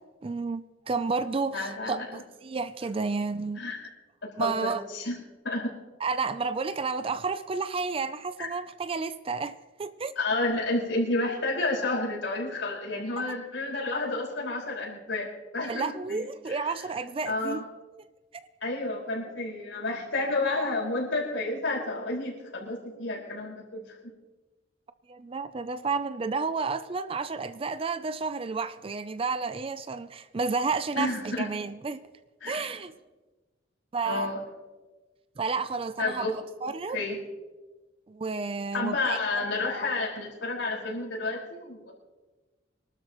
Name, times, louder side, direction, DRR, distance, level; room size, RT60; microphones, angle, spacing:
voice 1, 0.0-3.6 4.4-4.8 6.0-10.1 15.6-17.6 25.1-32.0 32.5-32.9 33.9-34.3 35.4-37.0 38.1-39.2, right 4 dB, 30° right, 0.4 m, -31 dB
voice 2, 1.5-2.2 3.6-3.9 4.4-5.2 5.4-5.7 8.4-8.5 10.1-15.3 15.5-16.7 17.2-17.6 18.6-24.1 31.0-31.5 32.4-32.8 34.0-34.4 36.0-36.3 36.9-37.2 38.7-41.9, left 2 dB, 80° left, 5.0 m, -30 dB
25.0 x 12.5 x 3.0 m
head